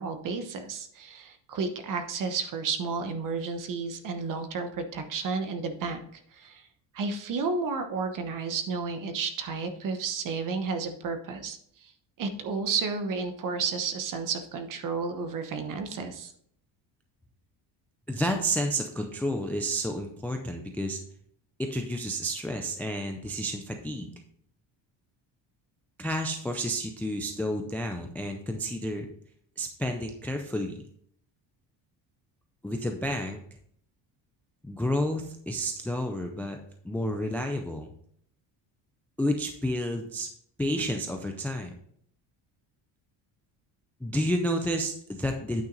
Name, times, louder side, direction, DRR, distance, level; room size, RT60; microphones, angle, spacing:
voice 1, 0.0-6.0 6.3-6.6 6.9-11.9 12.2-16.3, right 5 dB, 45° right, 7 dB, 1.0 m, -32 dB
voice 2, 18.1-21.0 21.6-24.1 26.0-29.1 29.6-30.8 32.6-33.4 34.6-36.6 36.8-37.9 39.2-40.3 40.6-41.7 44.0-45.6, equal, 5° left, 4 dB, 0.3 m, -30 dB
9.1 x 5.8 x 3.9 m, 0.65 s
cardioid pair, 175°, 46 cm